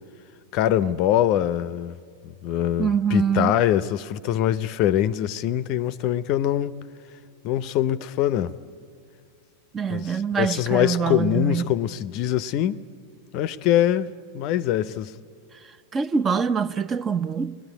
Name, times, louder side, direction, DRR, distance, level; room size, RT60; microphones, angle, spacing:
voice 1, 0.5-2.0 2.2-6.8 7.4-8.5 9.9-12.8 13.3-15.1, left 11 dB, 40° left, 0.6 m, -23 dB
voice 2, 2.8-3.6 9.7-11.7 15.9-17.6, right 6 dB, 20° right, 0.6 m, -24 dB
29.5 x 20.0 x 9.9 m
figure-of-eight pair, 90°, 0 cm